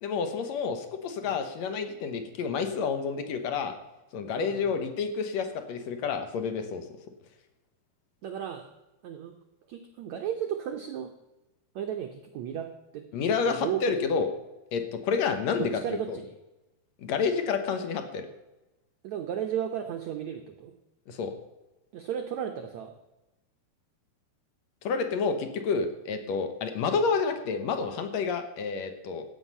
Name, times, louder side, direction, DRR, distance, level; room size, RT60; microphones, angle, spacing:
voice 1, 0.0-3.7 4.1-6.8 13.1-14.3 14.7-15.7 16.1-16.2 17.0-18.3 21.1-21.3 24.8-29.3, left 5 dB, 65° left, 7 dB, 1.8 m, -29 dB
voice 2, 4.3-4.9 8.2-8.7 9.0-9.3 9.7-11.1 11.7-12.7 12.9-13.1 13.4-14.0 15.6-16.3 19.0-20.7 21.9-23.0, right 9 dB, 85° right, 5 dB, 1.5 m, -34 dB
15.0 x 9.8 x 5.6 m, 1.0 s
omnidirectional pair, 4.6 m